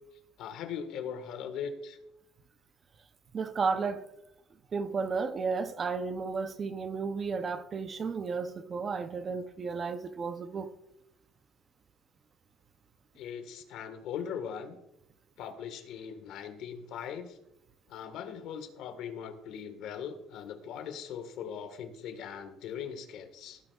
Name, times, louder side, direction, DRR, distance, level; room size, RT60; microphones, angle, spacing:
voice 1, 0.4-2.0 13.2-14.8 15.4-17.4 17.9-23.6, left 7 dB, 60° left, 1.5 m, -40 dB
voice 2, 3.3-4.1 4.7-10.7, right 5 dB, 25° right, 0.6 m, -33 dB
17.0 x 9.7 x 2.4 m
cardioid pair, 175°, 0 cm